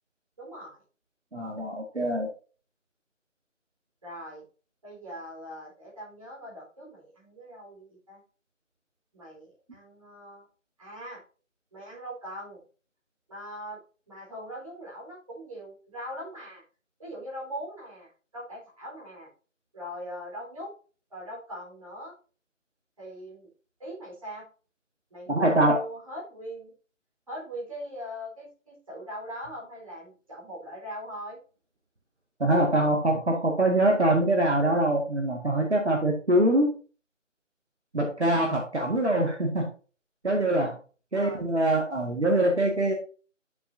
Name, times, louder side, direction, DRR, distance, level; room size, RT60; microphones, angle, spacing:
voice 1, 0.4-0.8 4.0-4.4 4.8-8.2 9.1-10.5 10.8-11.2 11.7-12.6 13.3-13.8 14.1-16.6 17.0-19.3 19.7-20.7 21.1-22.1 23.0-23.5 23.8-24.5 25.1-26.7 27.3-31.4 41.1-41.4, equal, 25° right, -5 dB, 4.2 m, -41 dB
voice 2, 1.3-2.3 25.3-25.8 32.4-36.7 37.9-39.7 40.2-40.8 41.1-42.9, right 1 dB, 60° right, 0 dB, 2.1 m, -24 dB
10.0 x 7.0 x 2.7 m, 0.37 s
figure-of-eight pair, 165°, 38 cm